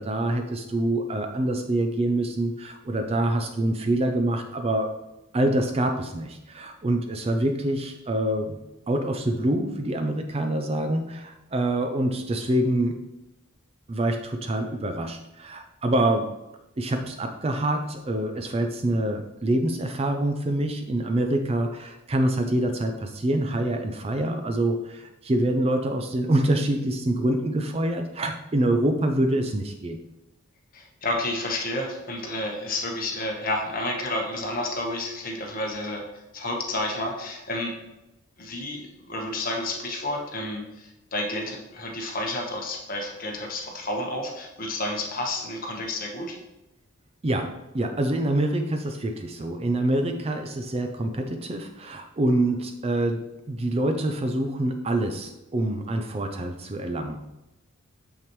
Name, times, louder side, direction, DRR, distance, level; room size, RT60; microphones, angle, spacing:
voice 1, 0.0-4.9 5.3-8.6 8.9-12.9 13.9-16.3 16.8-30.0 47.2-57.3, right 1 dB, 25° right, 5 dB, 0.4 m, -26 dB
voice 2, 30.7-37.8 38.4-46.4, left 1 dB, 40° left, 0 dB, 1.1 m, -30 dB
6.7 x 5.9 x 3.1 m, 0.97 s
head